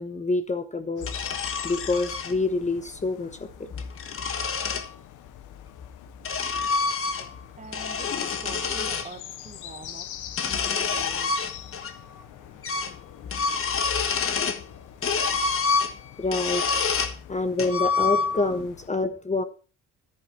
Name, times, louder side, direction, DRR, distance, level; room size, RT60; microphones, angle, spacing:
voice 1, 0.0-1.4 1.6-3.5 16.2-16.7 17.3-19.4, left 3 dB, 25° left, 1.1 m, -27 dB
sound 1, 1.0-18.9, left 12 dB, 90° left, 1.1 m, -44 dB
sound 2, 1.0-2.3 3.5-4.9 5.8-7.4 7.7-9.1 10.3-11.9 12.2-12.3 12.6-13.0 13.2-14.6 15.0-17.2 17.6-18.5, left 5 dB, 45° left, 1.4 m, -27 dB
voice 2, 6.5-16.2 17.2-17.3, right 3 dB, 25° right, 1.7 m, -48 dB
10.5 x 9.7 x 4.4 m
cardioid pair, 90°, 30 cm